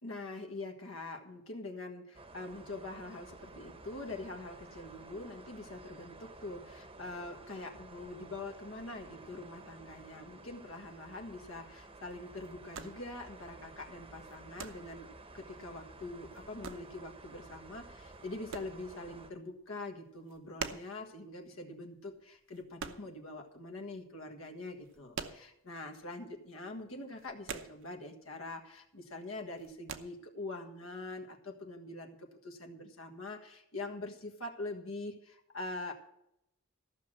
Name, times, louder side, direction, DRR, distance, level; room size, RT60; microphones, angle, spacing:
voice 1, 0.0-15.1 15.3-35.9, left 2 dB, 70° left, 3 dB, 1.6 m, -44 dB
sound 1, 2.1-19.3, right 2 dB, 25° right, 1.0 m, -53 dB
sound 2, 10.9-23.8 24.1-26.0 26.3-26.5 26.7-28.3 28.6-29.1 29.4-30.0, right 5 dB, 60° right, 0.9 m, -46 dB
14.0 x 6.4 x 7.6 m, 0.78 s
head